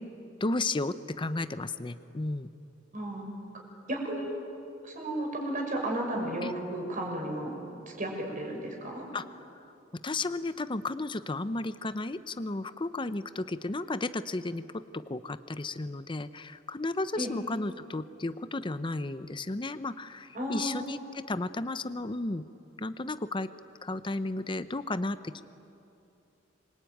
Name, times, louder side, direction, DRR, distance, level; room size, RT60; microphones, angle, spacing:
voice 1, 0.4-2.5 6.4-6.5 9.1-9.2 10.0-22.4 22.8-23.5 23.8-25.4, left 2 dB, 25° left, 12 dB, 0.7 m, -33 dB
voice 2, 2.9-3.3 3.9-4.3 4.8-7.6 7.9-9.0 17.2-17.3 20.3-20.7, right 1 dB, 45° right, 0 dB, 6.2 m, -33 dB
26.5 x 23.5 x 9.2 m, 2.7 s
head